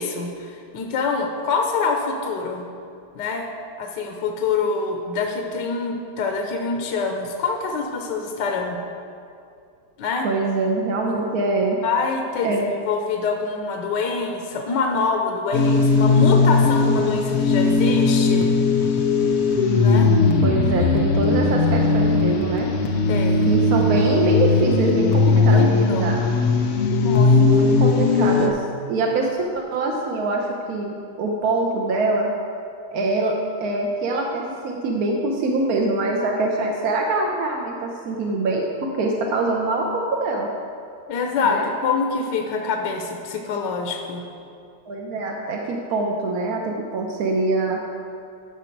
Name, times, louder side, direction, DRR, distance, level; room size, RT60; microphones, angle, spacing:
voice 1, 0.0-2.7 3.1-3.5 3.8-8.8 10.0-10.3 11.8-12.6 12.8-18.5 19.8-20.1 23.1-23.5 25.2-26.1 27.0-27.7 41.1-44.3, left 4 dB, 70° left, 3 dB, 1.3 m, -25 dB
voice 2, 10.2-11.8 12.4-12.7 20.4-22.7 23.5-26.3 27.3-28.6 28.9-29.3 29.5-32.3 32.9-33.3 33.6-40.5 41.4-41.6 44.9-47.8, right 2 dB, 65° right, 0 dB, 1.0 m, -24 dB
sound 1, 15.5-28.5, left 3 dB, 85° left, 0.5 m, -18 dB
12.0 x 6.0 x 4.6 m, 2.5 s
omnidirectional pair, 2.1 m